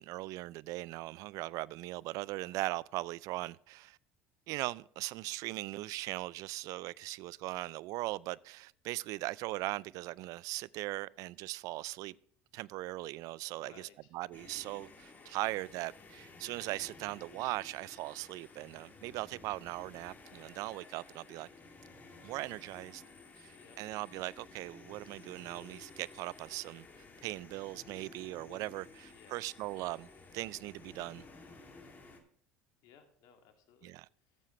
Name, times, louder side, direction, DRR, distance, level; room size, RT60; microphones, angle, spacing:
voice 1, 0.0-4.0 4.5-12.2 12.5-21.5 22.2-23.0 23.4-26.9 27.2-30.1 30.3-31.2 33.8-34.1, right 18 dB, 60° right, 0.3 m, -39 dB
voice 2, 13.6-14.1 15.2-15.6 23.4-23.8 29.0-29.9 32.8-33.9 34.2-34.5, left 7 dB, 65° left, 1.9 m, -61 dB
sound 1, 14.3-32.2, left 3 dB, 25° left, 2.3 m, -55 dB
13.5 x 7.4 x 3.1 m
hypercardioid pair, 85°, 6 cm